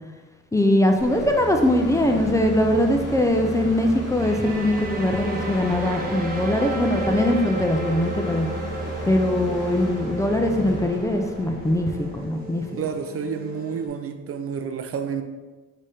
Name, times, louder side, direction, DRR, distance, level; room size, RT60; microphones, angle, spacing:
voice 1, 0.5-8.5 9.0-12.6, left 1 dB, 10° left, 3 dB, 0.4 m, -21 dB
sound 1, 1.0-12.3, right 1 dB, 35° left, 1.4 m, -34 dB
sound 2, 4.2-13.9, right 2 dB, 30° right, 0.9 m, -34 dB
voice 2, 12.8-15.2, right 7 dB, 50° right, 7 dB, 0.4 m, -29 dB
5.0 x 2.8 x 3.4 m, 1.3 s
cardioid pair, 90°, 30 cm